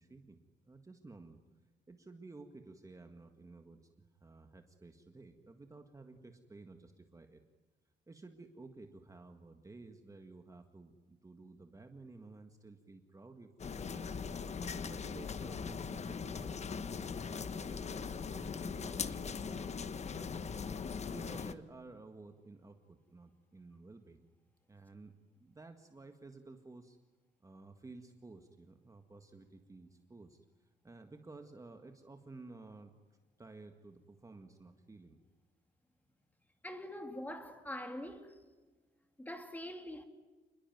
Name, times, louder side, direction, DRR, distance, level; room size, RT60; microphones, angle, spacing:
voice 1, 0.0-1.4 1.9-3.8 4.2-7.4 8.1-14.2 14.8-20.5 21.1-24.3 24.7-25.1 25.4-27.0 27.4-32.9 33.4-35.2, right 3 dB, 15° right, 1.8 m, -54 dB
sound 1, 13.6-21.5, left 5 dB, 35° left, 1.3 m, -40 dB
voice 2, 36.6-38.4 39.2-40.0, left 1 dB, 10° left, 2.8 m, -44 dB
28.5 x 21.5 x 9.4 m
cardioid pair, 130°, 19 cm